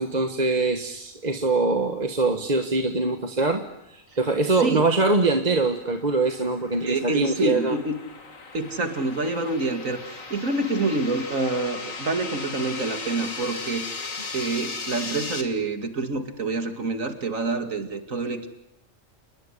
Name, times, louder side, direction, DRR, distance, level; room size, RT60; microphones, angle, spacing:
voice 1, 0.0-3.6 3.9-7.8, right 3 dB, 35° right, 6 dB, 1.5 m, -23 dB
voice 2, 4.5-4.9 6.9-8.0 8.5-14.1 14.3-18.5, right 2 dB, 75° right, 8 dB, 2.8 m, -27 dB
sound 1, 5.2-15.4, left 4 dB, 80° left, 2.5 m, -37 dB
29.0 x 20.0 x 10.0 m, 0.80 s
omnidirectional pair, 1.4 m